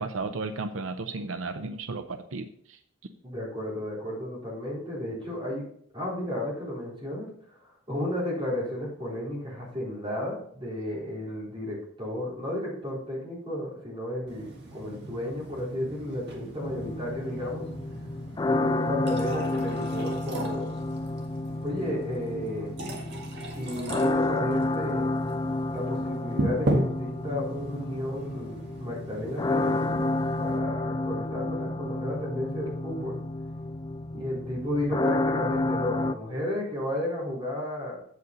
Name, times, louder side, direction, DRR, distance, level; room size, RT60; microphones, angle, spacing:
voice 1, 0.0-2.5, right 3 dB, 90° right, 9 dB, 0.6 m, -33 dB
voice 2, 3.2-5.6 5.9-7.3 7.9-17.7 18.4-20.7 21.6-22.7 23.5-25.2 25.7-30.1 30.4-33.2 34.1-38.0, left 1 dB, 25° right, -5 dB, 4.0 m, -33 dB
sound 1, 14.3-30.6, right 1 dB, 55° right, 1.7 m, -37 dB
sound 2, 16.6-36.1, left 2 dB, 20° left, 0.3 m, -30 dB
8.3 x 7.9 x 4.0 m, 0.63 s
head